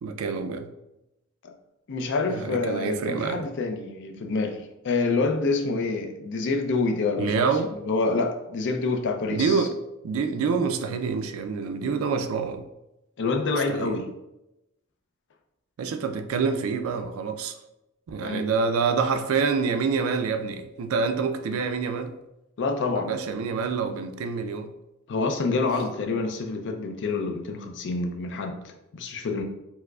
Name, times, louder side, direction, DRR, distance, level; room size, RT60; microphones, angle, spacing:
voice 1, 0.0-0.7 2.3-3.4 7.2-7.7 9.3-9.8 10.0-12.7 13.7-14.0 15.8-17.6 18.1-22.1 22.9-24.7, right 5 dB, 70° right, 8 dB, 0.3 m, -27 dB
voice 2, 1.9-9.7 13.2-14.1 18.2-18.5 22.6-23.2 25.1-29.4, left 3 dB, 55° left, 5 dB, 0.4 m, -27 dB
4.6 x 2.0 x 2.3 m, 0.91 s
head